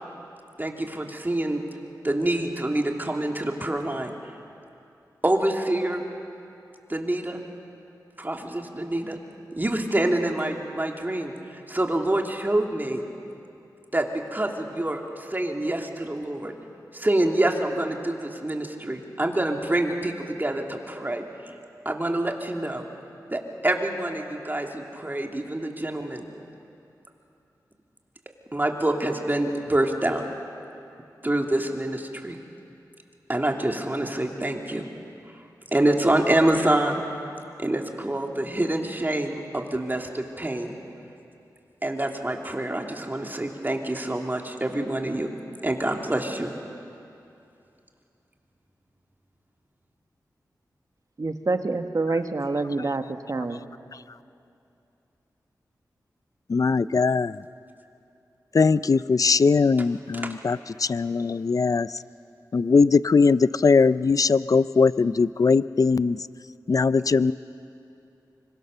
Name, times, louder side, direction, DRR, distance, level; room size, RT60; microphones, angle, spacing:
voice 1, 0.6-1.6 2.0-4.1 5.2-6.0 6.9-7.4 8.2-9.2 9.5-13.0 13.9-16.5 16.9-21.2 21.8-22.8 23.3-26.3 28.5-30.2 31.2-32.4 33.3-34.9 35.7-37.0 37.6-40.8 41.8-45.3 45.6-46.5 60.1-60.3, right 1 dB, 25° right, 2 dB, 2.9 m, -26 dB
voice 2, 51.2-53.6, right 3 dB, 50° right, 7 dB, 1.5 m, -27 dB
voice 3, 56.5-57.3 58.5-60.6 60.9-61.9 62.5-66.2 66.7-67.3, left 4 dB, 50° left, 17 dB, 0.5 m, -20 dB
25.0 x 23.0 x 6.8 m, 2.7 s
cardioid pair, 45°, 7 cm